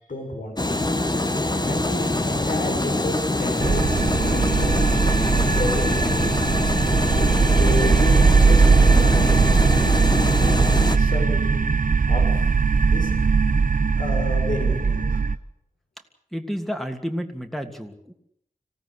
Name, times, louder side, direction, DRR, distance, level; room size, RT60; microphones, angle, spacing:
voice 1, 0.1-0.9 1.6-5.0 5.5-6.5 7.5-9.6 10.2-10.6 10.9-11.7 12.1-12.4 12.8-13.1 14.0-15.2, left 1 dB, 65° left, 3 dB, 6.9 m, -32 dB
sound 1, 0.6-11.0, left 2 dB, 30° left, 1.9 m, -24 dB
sound 2, 3.6-15.4, right 5 dB, 65° right, 0.9 m, -19 dB
voice 2, 16.3-18.1, equal, ahead, 5 dB, 3.0 m, -30 dB
26.0 x 17.0 x 8.4 m, 0.70 s
wide cardioid pair, 80°, 15 cm